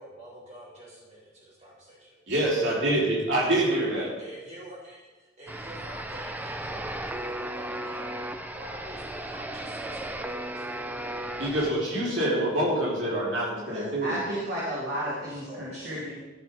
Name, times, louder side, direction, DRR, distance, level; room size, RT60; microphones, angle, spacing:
voice 1, 0.0-2.1 3.5-3.9 4.2-8.0 8.5-10.6 15.0-16.1, right 1 dB, 35° right, -7 dB, 4.1 m, -46 dB
voice 2, 2.3-4.1 11.4-14.2, right 1 dB, 80° right, -6 dB, 3.8 m, -26 dB
sound 1, 5.5-11.7, right 1 dB, 10° right, 0.5 m, -35 dB
voice 3, 13.7-16.1, equal, 55° right, -7 dB, 3.0 m, -33 dB
13.5 x 6.1 x 5.3 m, 1.2 s
head